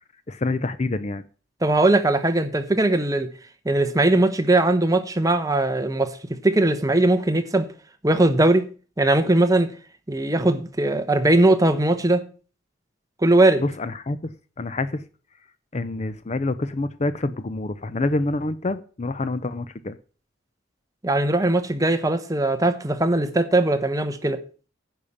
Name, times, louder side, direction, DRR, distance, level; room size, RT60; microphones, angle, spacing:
voice 1, 0.3-1.2 13.6-14.2 14.6-15.0 15.7-20.0, left 2 dB, 35° left, 0.6 m, -27 dB
voice 2, 1.6-3.3 3.6-6.2 6.4-7.7 8.0-8.7 9.0-9.7 10.1-12.2 13.2-13.6 21.0-24.4, right 2 dB, 20° right, 1.0 m, -20 dB
10.0 x 5.6 x 8.4 m
head